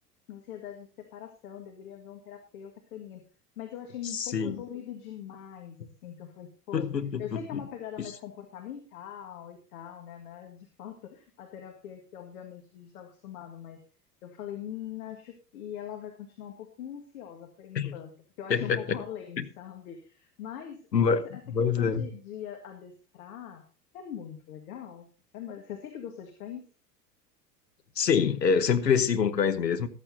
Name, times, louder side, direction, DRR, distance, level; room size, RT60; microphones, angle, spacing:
voice 1, 0.3-3.3 3.6-6.9 7.2-13.8 14.2-18.1 18.4-20.8 21.1-23.6 23.9-25.1 25.3-26.6, left 9 dB, 60° left, 1.9 m, -42 dB
voice 2, 4.0-4.6 6.7-7.6 17.7-18.0 18.5-19.0 19.4-19.5 20.9-22.1 28.0-29.9, left 6 dB, 80° left, 1.1 m, -26 dB
14.0 x 13.0 x 2.7 m
figure-of-eight pair, 80°, 49 cm